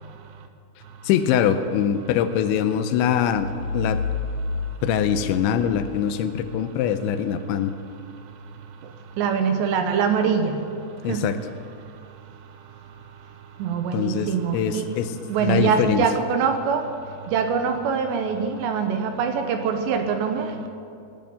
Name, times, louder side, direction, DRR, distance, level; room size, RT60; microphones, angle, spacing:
voice 1, 1.0-3.5 3.7-4.0 4.8-7.7 11.0-11.4 13.9-15.1 15.4-16.0, left 9 dB, 85° left, 10 dB, 2.9 m, -23 dB
sound 1, 3.3-6.1, left 3 dB, 45° left, 2.5 m, -30 dB
voice 2, 9.2-10.6 11.1-11.3 13.6-14.9 15.3-16.8 17.3-20.7, right 6 dB, 75° right, 6 dB, 2.9 m, -23 dB
17.5 x 7.1 x 9.7 m, 2.5 s
omnidirectional pair, 5.5 m